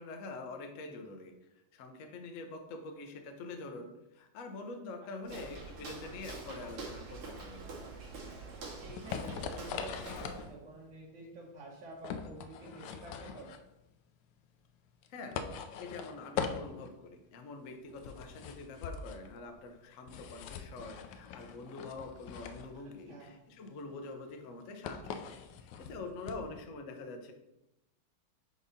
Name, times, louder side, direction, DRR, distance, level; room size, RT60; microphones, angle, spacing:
voice 1, 0.0-1.3 1.7-7.7 15.1-15.4 15.8-27.3, left 3 dB, 60° left, 4 dB, 0.8 m, -45 dB
Walk footsteps, 5.2-10.5, right 3 dB, 85° right, 2.1 m, -46 dB
sound 1, 8.3-26.6, left 6 dB, 75° left, 1.1 m, -42 dB
voice 2, 8.8-13.5 23.1-23.4, right 3 dB, 60° right, -8 dB, 2.1 m, -49 dB
4.8 x 4.2 x 5.2 m, 0.89 s
omnidirectional pair, 2.3 m